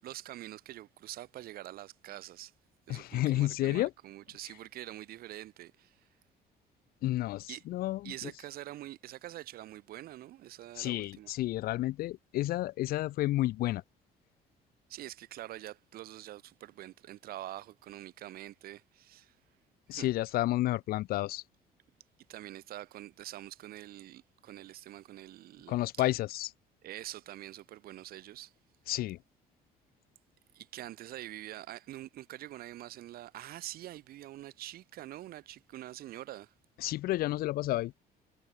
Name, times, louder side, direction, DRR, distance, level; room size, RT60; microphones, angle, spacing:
voice 1, 0.0-2.5 2.9-6.1 7.5-7.6 8.0-11.3 14.9-19.4 19.9-20.1 22.3-25.8 26.8-28.5 30.5-36.5, right 14 dB, 60° right, 0.6 m, -45 dB
voice 2, 2.9-3.9 7.0-8.1 10.8-13.8 19.9-21.4 25.7-26.5 28.9-29.2 36.8-37.9, left 16 dB, 65° left, 0.4 m, -31 dB
cardioid pair, 110°, 17 cm